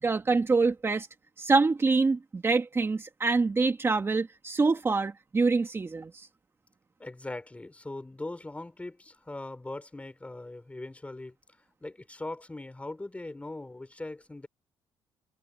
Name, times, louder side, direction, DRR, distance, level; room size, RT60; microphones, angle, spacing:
voice 1, 0.0-1.1 1.4-6.3, right 3 dB, 25° right, 2.0 m, -25 dB
voice 2, 7.0-11.3 11.8-14.5, left 2 dB, 15° left, 4.7 m, -40 dB
cardioid pair, 95°, 9 cm